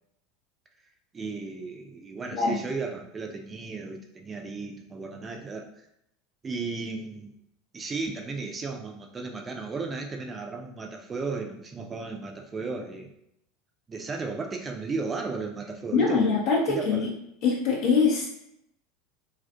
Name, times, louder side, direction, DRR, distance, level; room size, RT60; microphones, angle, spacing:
voice 1, 1.1-5.8 6.4-7.3 7.7-13.1 13.9-16.4 16.7-17.1, right 4 dB, 25° right, 2 dB, 0.4 m, -35 dB
voice 2, 15.9-17.1 17.4-18.3, left 5 dB, 55° left, -3 dB, 0.5 m, -23 dB
2.4 x 2.4 x 2.3 m, 0.76 s
figure-of-eight pair, 80°, 0 cm